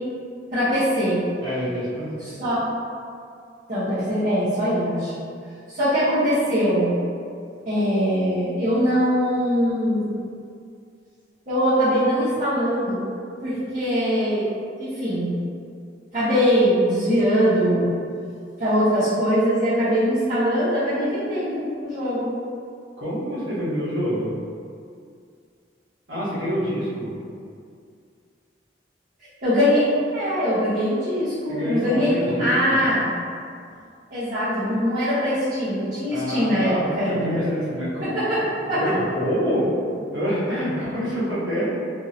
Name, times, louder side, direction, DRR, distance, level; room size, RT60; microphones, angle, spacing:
voice 1, 0.5-1.2 2.2-2.6 3.7-5.1 5.7-6.9 7.7-10.2 11.5-13.0 13.4-14.5 14.8-15.4 16.1-17.9 18.6-22.4 29.4-29.9 30.1-33.1 34.1-37.4 38.0-38.4 38.7-38.8, equal, 45° right, -16 dB, 0.9 m, -22 dB
voice 2, 1.4-2.3 23.0-24.3 26.1-27.1 31.5-32.8 36.1-38.2 38.6-39.7 40.1-41.6, equal, 90° right, -12 dB, 1.0 m, -26 dB
2.7 x 2.6 x 2.7 m, 2.3 s
head